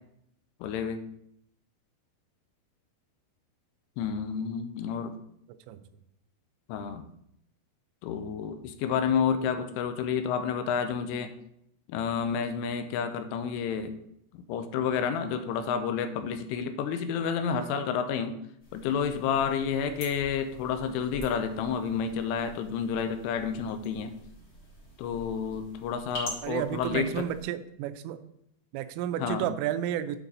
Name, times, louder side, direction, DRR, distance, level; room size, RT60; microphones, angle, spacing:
voice 1, 0.6-1.0 4.0-5.1 6.7-7.1 8.0-11.3 11.9-13.9 14.3-18.4 18.7-24.1 25.0-27.3 29.2-29.5, left 7 dB, 85° left, 9 dB, 3.0 m, -30 dB
sound 1, 18.6-27.4, equal, 50° left, 1.2 m, -46 dB
voice 2, 26.4-28.2 28.7-30.2, right 11 dB, 85° right, 11 dB, 3.1 m, -31 dB
8.1 x 5.8 x 4.0 m, 0.75 s
omnidirectional pair, 5.7 m